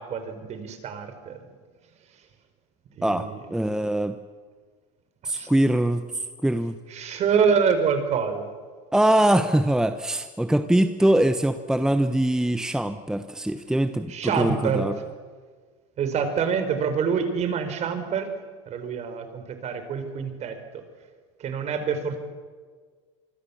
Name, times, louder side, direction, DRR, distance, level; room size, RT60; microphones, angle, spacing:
voice 1, 0.0-1.4 3.0-3.4 5.3-5.5 6.9-8.5 14.1-14.9 16.0-18.3 18.7-20.9 21.4-22.2, right 6 dB, 40° right, 8 dB, 4.6 m, -26 dB
voice 2, 3.0-4.1 5.2-6.0 6.4-6.8 8.9-14.9, right 1 dB, 5° right, 9 dB, 1.1 m, -22 dB
25.5 x 24.0 x 7.2 m, 1.5 s
supercardioid pair, 110°, 17 cm